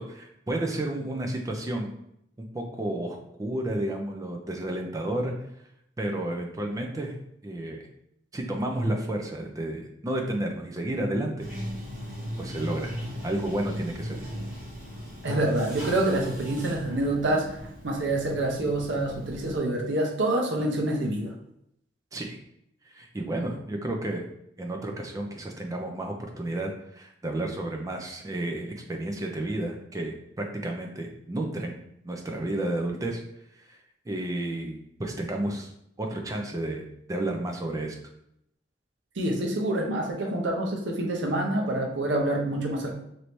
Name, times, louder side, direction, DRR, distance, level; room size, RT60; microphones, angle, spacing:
voice 1, 0.0-1.9 2.5-5.3 6.0-7.1 7.4-7.8 8.3-11.5 12.4-12.9 13.2-14.3 22.1-22.4 22.9-24.2 24.6-31.8 32.0-33.2 33.6-33.8 34.1-35.7 36.0-36.8 37.1-38.0, right 1 dB, 20° right, 2 dB, 0.4 m, -31 dB
Bathtub (filling or washing), 11.4-19.6, equal, 50° right, 1.2 m, -38 dB
voice 2, 15.2-21.3 39.2-42.9, right 1 dB, 80° right, 1 dB, 0.7 m, -27 dB
3.2 x 2.7 x 3.0 m, 0.76 s
head